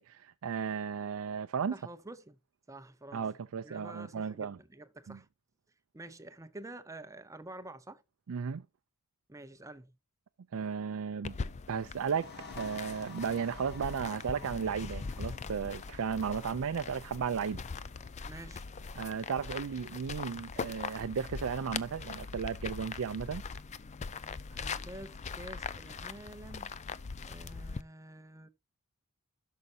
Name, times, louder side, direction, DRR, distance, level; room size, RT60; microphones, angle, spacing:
voice 1, 0.0-1.8 3.1-4.6 5.1-5.2 8.3-8.6 10.5-11.4 11.7-17.6 19.0-23.4, right 6 dB, 65° right, 0.4 m, -35 dB
voice 2, 1.7-2.4 2.7-3.2 3.6-5.3 5.9-8.0 9.3-9.9 18.3-18.7 24.5-26.7 27.3-28.5, right 1 dB, 15° right, 0.6 m, -48 dB
sound 1, 11.2-27.8, left 5 dB, 30° left, 0.4 m, -41 dB
sound 2, 12.0-19.4, left 4 dB, 50° left, 1.7 m, -52 dB
15.0 x 6.5 x 2.7 m
head